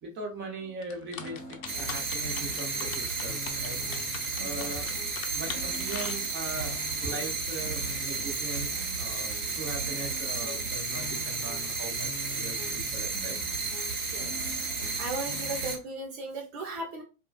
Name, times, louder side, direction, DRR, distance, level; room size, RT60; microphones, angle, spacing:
voice 1, 0.0-3.8 4.4-13.4, right 2 dB, 25° right, 1 dB, 0.8 m, -40 dB
sound 1, 0.8-6.7, left 7 dB, 70° left, 0.5 m, -42 dB
sound 2, 1.2-15.8, left 2 dB, 25° left, 1.0 m, -46 dB
sound 3, 1.7-15.8, right 4 dB, 70° right, 1.0 m, -33 dB
voice 2, 15.0-17.0, right 2 dB, 50° right, 1 dB, 1.1 m, -36 dB
2.4 x 2.3 x 2.3 m, 0.31 s
figure-of-eight pair, 90°, 41 cm